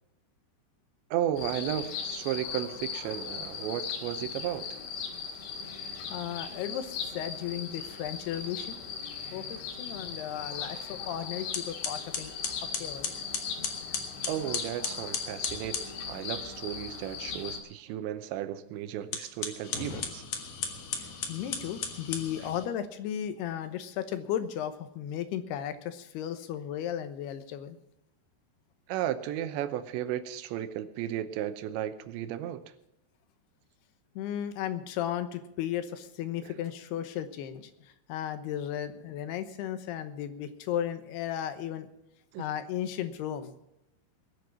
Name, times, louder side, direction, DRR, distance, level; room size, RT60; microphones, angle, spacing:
voice 1, 1.1-4.7 14.3-15.8 16.1-20.2 22.4-22.5 28.9-32.6 42.3-42.4, right 11 dB, 85° right, 11 dB, 3.1 m, -34 dB
sound 1, 1.4-17.6, left 6 dB, 90° left, 4.2 m, -38 dB
voice 2, 6.1-8.8 9.3-12.3 12.8-13.1 21.0-27.8 34.2-41.9 42.4-43.5, left 10 dB, 75° left, 10 dB, 2.9 m, -35 dB
sound 2, 11.5-15.9 19.0-22.7, left 6 dB, 55° left, 1.9 m, -36 dB
21.0 x 7.6 x 6.2 m, 0.87 s
omnidirectional pair, 5.0 m